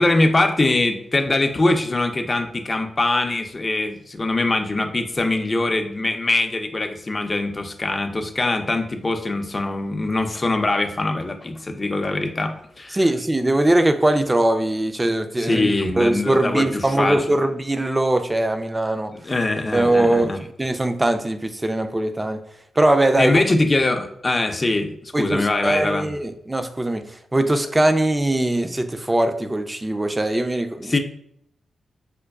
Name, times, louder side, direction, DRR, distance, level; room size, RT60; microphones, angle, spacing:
voice 1, 0.0-13.0 15.4-17.2 19.2-20.4 23.2-26.1 30.8-31.0, left 2 dB, 35° left, 6 dB, 0.5 m, -22 dB
voice 2, 12.9-15.7 16.0-19.1 19.7-22.4 22.8-23.4 25.1-30.9, right 1 dB, 20° right, 8 dB, 0.5 m, -21 dB
5.0 x 2.2 x 2.3 m, 0.68 s
supercardioid pair, 40°, 0 cm